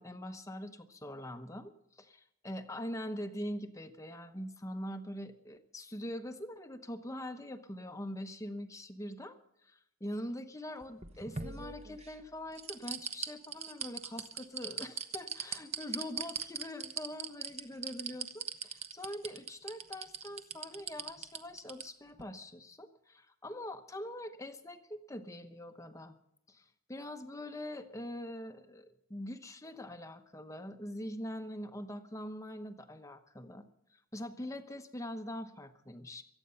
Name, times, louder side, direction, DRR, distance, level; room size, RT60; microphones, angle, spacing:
voice 1, 0.0-9.4 9.6-26.2 26.5-33.7 33.9-36.2, left 1 dB, 15° left, 8 dB, 1.0 m, -43 dB
sound 1, 10.8-12.1 12.6-21.8 22.2-22.3, right 7 dB, 30° right, 1.0 m, -39 dB
24.0 x 9.0 x 5.6 m, 0.79 s
head